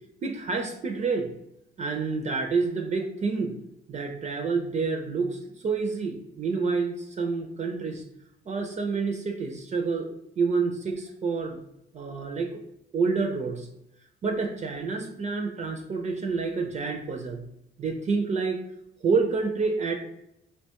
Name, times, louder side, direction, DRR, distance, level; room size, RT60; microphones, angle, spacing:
voice 1, 0.2-1.3 1.8-3.6 3.9-8.0 8.5-10.1 10.4-11.6 11.9-12.6 12.9-13.7 14.2-17.4 17.8-18.6 19.0-20.0, right 4 dB, 35° right, 4 dB, 0.4 m, -28 dB
2.8 x 2.2 x 2.8 m, 0.79 s
cardioid pair, 90°, 20 cm